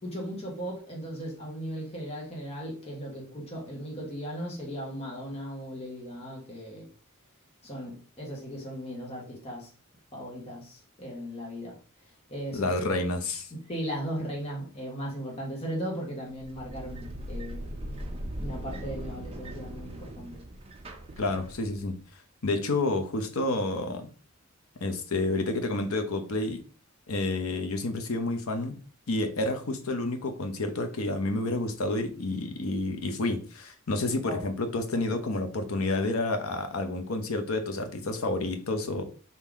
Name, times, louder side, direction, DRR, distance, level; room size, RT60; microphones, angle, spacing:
voice 1, 0.0-6.9 7.6-9.7 10.1-12.7 13.5-17.7 18.4-20.4 34.2-34.4, equal, 30° left, 1.2 m, -37 dB
voice 2, 12.5-13.5 21.2-22.0 22.4-24.1 24.8-26.6 27.1-28.8 29.1-39.0, left 2 dB, 85° left, 0.8 m, -29 dB
sound 1, 16.3-21.9, right 1 dB, 30° right, 0.7 m, -39 dB
3.7 x 2.8 x 4.7 m
head